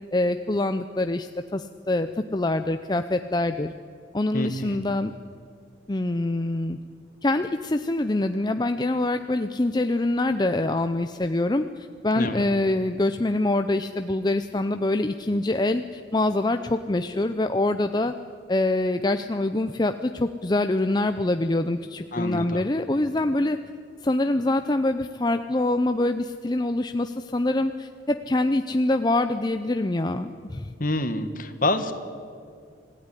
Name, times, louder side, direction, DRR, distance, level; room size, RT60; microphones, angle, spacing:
voice 1, 0.1-3.7 4.1-5.1 5.9-6.8 7.2-18.1 18.5-23.6 24.0-30.7, left 2 dB, 20° left, 8 dB, 0.6 m, -25 dB
voice 2, 4.3-4.8 12.2-12.5 22.1-22.6 30.8-31.9, left 1 dB, 45° left, 9 dB, 1.7 m, -27 dB
26.5 x 16.5 x 9.9 m, 2.3 s
head